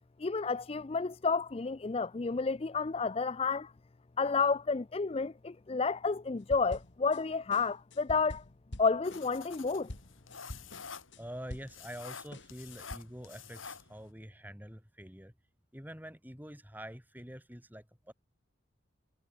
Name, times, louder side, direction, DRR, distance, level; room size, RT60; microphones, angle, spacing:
voice 1, 0.2-3.7 4.2-8.4 8.8-9.9, left 4 dB, 30° left, 0.4 m, -31 dB
sound 1, 6.5-7.2 7.5-12.0 12.3-13.0, left 1 dB, 65° left, 2.5 m, -46 dB
sound 2, 9.0-14.1, left 6 dB, 90° left, 6.5 m, -49 dB
voice 2, 11.2-15.3 15.7-18.1, equal, 10° right, 7.5 m, -46 dB
head